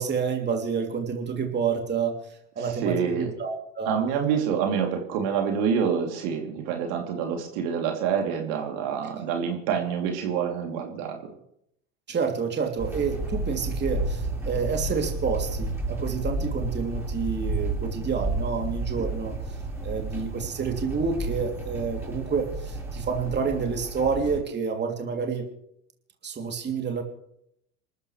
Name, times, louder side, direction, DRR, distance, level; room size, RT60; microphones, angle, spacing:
voice 1, 0.0-2.2 2.5-3.9 12.1-19.4 19.8-25.5 26.2-27.0, right 5 dB, 25° right, 2 dB, 3.1 m, -29 dB
voice 2, 2.6-3.3 3.8-11.3, right 7 dB, 60° right, 2 dB, 3.2 m, -27 dB
sound 1, 12.8-24.4, right 2 dB, 5° right, 7.1 m, -31 dB
27.5 x 13.5 x 3.3 m, 0.76 s
hypercardioid pair, 80°, 39 cm